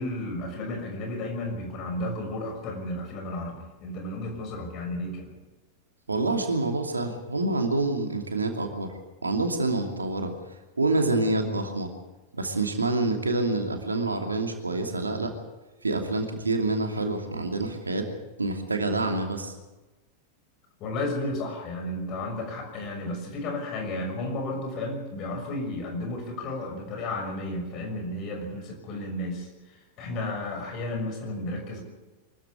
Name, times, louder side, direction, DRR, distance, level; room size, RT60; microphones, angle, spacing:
voice 1, 0.0-5.4 20.8-31.8, left 1 dB, 35° left, 4 dB, 6.2 m, -33 dB
voice 2, 6.1-8.9 9.2-10.3 10.8-11.9 12.4-15.3 15.8-18.1 18.4-19.5, right 2 dB, 80° right, 4 dB, 2.7 m, -27 dB
24.0 x 14.5 x 8.5 m, 1.1 s
figure-of-eight pair, 90°, 0 cm